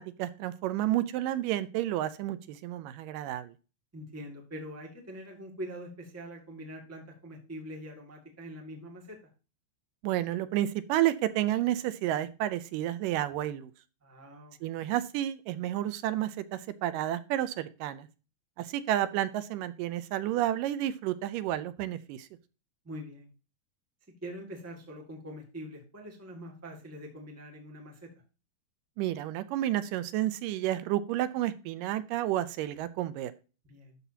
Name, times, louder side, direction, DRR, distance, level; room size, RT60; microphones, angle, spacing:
voice 1, 0.0-3.5 10.0-13.7 14.6-18.1 18.6-22.3 29.0-33.3, right 13 dB, 80° right, 14 dB, 2.2 m, -31 dB
voice 2, 3.9-9.2 14.0-14.9 22.8-23.3 24.2-28.1 33.6-34.0, equal, 10° right, 1 dB, 0.9 m, -44 dB
12.0 x 5.8 x 2.7 m, 0.33 s
omnidirectional pair, 3.9 m